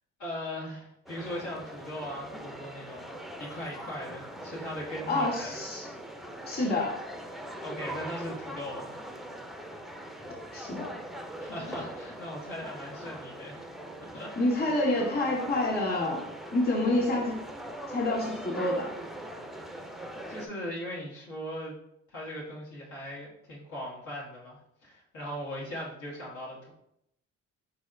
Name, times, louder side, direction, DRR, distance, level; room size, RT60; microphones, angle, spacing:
voice 1, 0.2-5.5 7.6-9.0 11.4-13.6 14.1-14.5 20.3-21.7 22.1-26.7, equal, 85° left, -5 dB, 1.7 m, -39 dB
sound 1, 1.1-20.5, right 1 dB, ahead, 0.4 m, -42 dB
voice 2, 5.1-5.9 6.5-7.0 10.5-10.9 14.4-16.2 16.5-17.4 17.9-18.9, left 2 dB, 30° left, -2 dB, 1.5 m, -28 dB
4.6 x 4.1 x 2.6 m, 0.75 s
cardioid pair, 90°, 30 cm